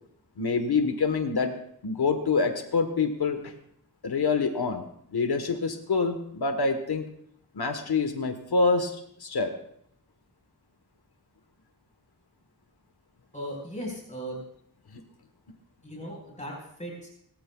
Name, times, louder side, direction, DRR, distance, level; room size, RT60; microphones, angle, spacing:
voice 1, 0.4-1.5 1.8-3.5 4.0-4.9 5.1-7.1 7.5-9.5 14.9-15.0, left 4 dB, 75° left, 7 dB, 1.2 m, -26 dB
voice 2, 13.3-14.4 15.8-17.1, equal, 20° left, -2 dB, 4.4 m, -37 dB
21.0 x 14.0 x 2.3 m, 0.72 s
wide cardioid pair, 85°, 39 cm